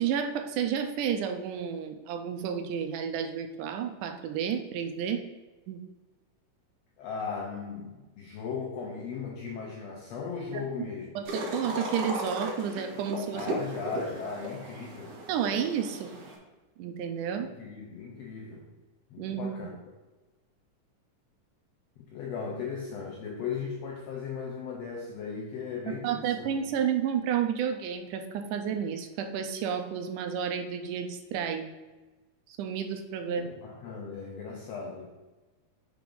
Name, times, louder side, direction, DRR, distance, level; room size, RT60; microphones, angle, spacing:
voice 1, 0.0-5.2 5.7-5.8 10.5-10.9 11.2-13.5 15.3-16.1 16.8-17.5 19.2-19.7 26.0-31.7 32.5-33.5, right 8 dB, 80° right, 7 dB, 2.1 m, -31 dB
voice 2, 7.0-11.1 13.3-15.2 17.4-18.7 19.1-19.8 22.0-26.5 33.3-35.1, left 5 dB, 80° left, -1 dB, 1.5 m, -37 dB
sound 1, 11.3-16.4, right 1 dB, 60° right, 2.0 m, -36 dB
5.1 x 4.6 x 5.3 m, 1.2 s
omnidirectional pair, 3.8 m